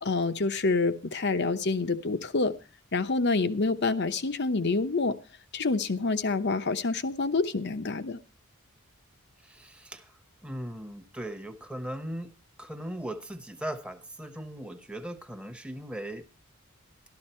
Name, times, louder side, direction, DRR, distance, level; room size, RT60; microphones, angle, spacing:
voice 1, 0.0-2.5 2.9-5.2 5.5-8.2, left 3 dB, 55° left, 10 dB, 0.9 m, -27 dB
voice 2, 9.4-10.1 10.4-12.3 12.6-16.2, right 1 dB, 5° right, 7 dB, 1.0 m, -38 dB
13.0 x 12.5 x 4.4 m, 0.33 s
head